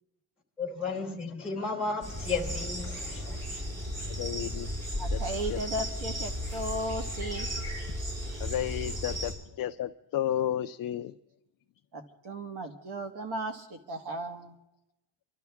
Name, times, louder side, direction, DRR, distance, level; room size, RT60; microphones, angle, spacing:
voice 1, 0.6-3.6, left 4 dB, ahead, 2.1 m, -34 dB
sound 1, 2.0-9.3, equal, 30° right, 6.8 m, -35 dB
voice 2, 4.2-4.7 5.1-5.2 5.5-5.6 8.4-11.1, left 11 dB, 45° left, 0.4 m, -32 dB
voice 3, 5.0-7.5 11.9-14.5, right 1 dB, 50° right, 1.7 m, -36 dB
27.0 x 12.5 x 3.5 m
cardioid pair, 150°, 50 cm